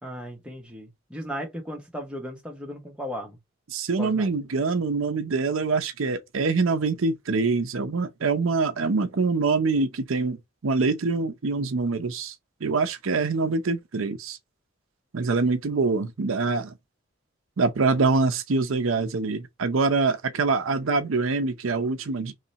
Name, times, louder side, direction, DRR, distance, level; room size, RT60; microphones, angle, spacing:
voice 1, 0.0-3.4 4.0-4.3, equal, 5° right, 1.0 m, -36 dB
voice 2, 3.7-12.3 12.6-14.4 15.1-16.7 17.6-22.3, right 4 dB, 75° right, 0.6 m, -25 dB
3.2 x 2.8 x 4.0 m
head